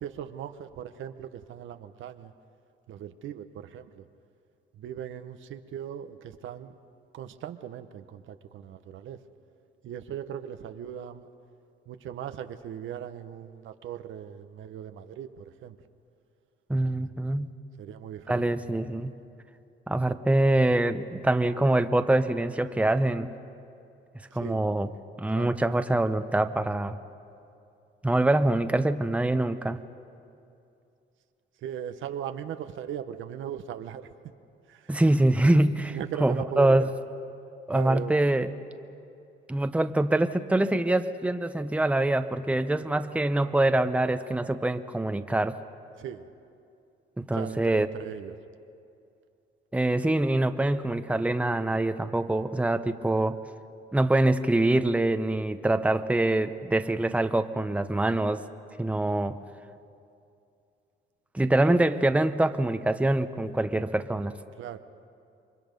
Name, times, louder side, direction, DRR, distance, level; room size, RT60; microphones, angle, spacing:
voice 1, 0.0-2.3 2.9-4.0 4.8-6.7 7.1-9.2 9.8-11.2 11.9-15.8 17.8-18.5 24.4-24.6 25.3-25.6 31.6-34.1 34.7-34.9 35.9-36.9 37.7-38.1 46.0-46.3 47.3-48.4 61.4-61.8 64.6-64.8, right 9 dB, 80° right, 9 dB, 1.0 m, -38 dB
voice 2, 16.7-17.5 18.3-19.1 19.9-23.3 24.3-24.9 25.2-27.0 28.0-29.8 34.9-36.9 37.7-38.5 39.5-45.6 47.2-47.9 49.7-53.4 53.9-58.4 58.8-59.4 61.3-64.4, right 1 dB, 5° right, 9 dB, 0.8 m, -24 dB
28.0 x 23.0 x 5.3 m, 2.6 s
cardioid pair, 90°, 20 cm